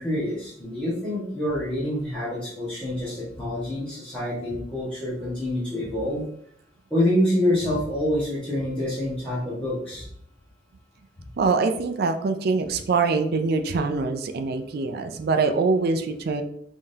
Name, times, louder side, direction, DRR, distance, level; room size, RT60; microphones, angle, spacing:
voice 1, 0.0-6.2 6.9-10.1, left 1 dB, 10° left, -11 dB, 1.2 m, -26 dB
voice 2, 11.4-16.4, right 4 dB, 55° right, 7 dB, 0.4 m, -24 dB
3.6 x 3.5 x 2.7 m, 0.68 s
head